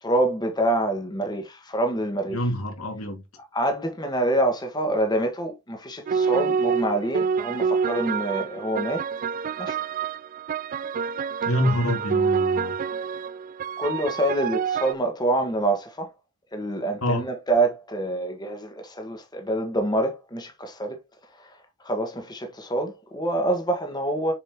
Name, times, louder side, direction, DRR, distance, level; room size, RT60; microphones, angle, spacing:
voice 1, 0.0-2.4 3.5-9.1 9.6-9.8 13.8-16.1 16.5-21.0 21.8-24.3, right 1 dB, 20° left, 1.4 m, -26 dB
voice 2, 2.3-3.2 11.5-12.7 17.0-17.2, equal, 75° left, 2.2 m, -26 dB
sound 1, 6.1-14.9, right 6 dB, 40° right, 0.3 m, -27 dB
6.8 x 5.3 x 2.9 m
head